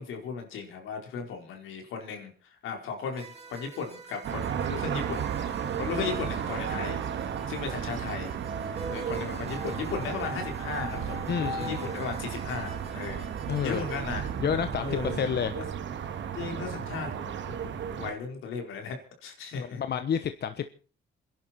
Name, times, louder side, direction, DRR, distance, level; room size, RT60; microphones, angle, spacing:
voice 1, 0.0-5.3 5.8-7.0 7.5-8.3 8.7-13.3 13.6-14.3 14.8-15.2 15.6-15.7 16.3-17.3 17.6-19.0 19.2-20.0, left 5 dB, 85° left, 3 dB, 4.5 m, -36 dB
sound 1, 3.1-14.4, right 2 dB, 30° right, 3.2 m, -43 dB
sound 2, 4.2-18.1, right 8 dB, 70° right, 2.1 m, -34 dB
voice 2, 11.3-11.8 13.5-13.8 14.4-15.5 19.5-20.7, left 8 dB, 55° left, 10 dB, 1.1 m, -30 dB
26.5 x 11.0 x 4.3 m, 0.39 s
cardioid pair, 90°, 20 cm